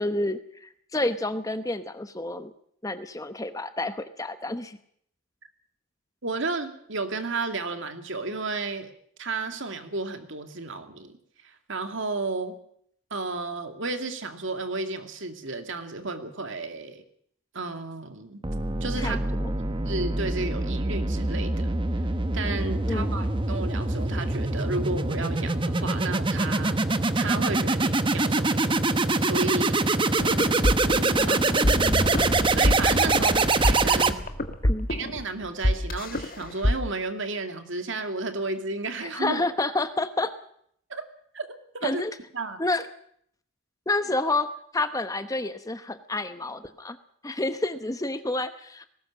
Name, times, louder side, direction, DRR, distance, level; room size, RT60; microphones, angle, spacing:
voice 1, 0.0-2.5 2.8-4.8 19.0-19.5 22.8-23.3 31.2-32.1 34.6-34.9 39.0-40.3 41.8-42.1 42.6-42.9 43.9-44.5 44.7-47.0 47.2-48.9, left 2 dB, 15° left, 10 dB, 0.9 m, -29 dB
voice 2, 6.2-8.9 9.2-11.1 11.4-12.6 13.1-17.0 17.5-18.4 18.8-19.3 19.8-21.7 22.3-26.8 27.2-28.8 29.2-29.8 31.3-31.4 32.3-34.2 34.9-39.4 40.9-41.0 41.3-41.5 41.8-42.0 42.3-42.6, right 3 dB, 60° right, 7 dB, 2.4 m, -32 dB
sound 1, 18.4-34.5, right 2 dB, 25° right, 1.0 m, -25 dB
sound 2, 30.2-36.7, left 1 dB, 40° left, 1.7 m, -26 dB
20.0 x 18.0 x 7.5 m, 0.66 s
head